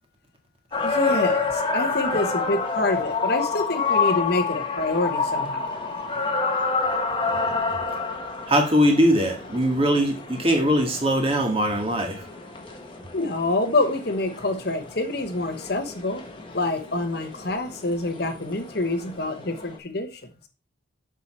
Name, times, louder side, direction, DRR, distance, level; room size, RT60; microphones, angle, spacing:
sound 1, 0.7-19.8, left 4 dB, 25° left, 1.3 m, -29 dB
voice 1, 0.8-5.7 13.1-16.2 16.5-20.2, left 2 dB, 50° left, 7 dB, 1.2 m, -26 dB
voice 2, 8.5-12.2, equal, 30° right, 3 dB, 1.8 m, -21 dB
7.4 x 6.0 x 4.4 m, 0.30 s
head